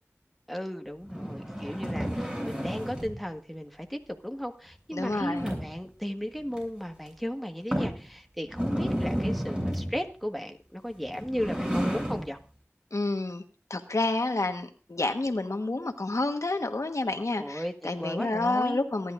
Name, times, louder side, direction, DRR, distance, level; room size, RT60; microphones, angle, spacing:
voice 1, 0.5-12.4 17.4-18.8, equal, ahead, 5 dB, 1.6 m, -35 dB
sound 1, 1.0-3.2 5.0-5.9 6.5-6.6 7.1-7.2 7.7-8.0 8.5-10.0 11.0-12.3, equal, 20° right, 7.3 m, -31 dB
voice 2, 4.9-5.5 12.9-13.4 13.7-19.1, left 2 dB, 85° left, 6 dB, 1.3 m, -29 dB
27.5 x 11.0 x 2.5 m, 0.33 s
wide cardioid pair, 45°, 5 cm